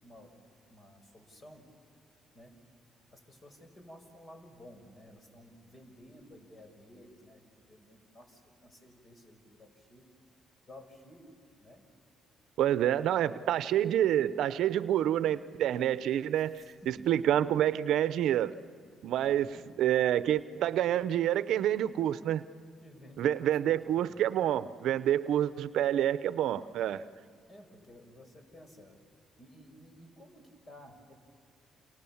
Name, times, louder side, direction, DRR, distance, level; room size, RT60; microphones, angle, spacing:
voice 1, 0.0-1.7 2.3-2.6 3.1-10.1 10.7-11.3 11.6-11.8 12.6-13.8 16.2-17.4 19.1-19.7 22.8-23.6 23.8-24.1 27.5-29.0 29.4-31.1, equal, 35° left, 6 dB, 5.4 m, -54 dB
voice 2, 12.6-18.5 19.0-19.5 19.8-22.4 23.2-27.0, right 11 dB, 80° right, 14 dB, 0.7 m, -28 dB
29.5 x 28.0 x 7.2 m, 2.3 s
cardioid pair, 90°, 0 cm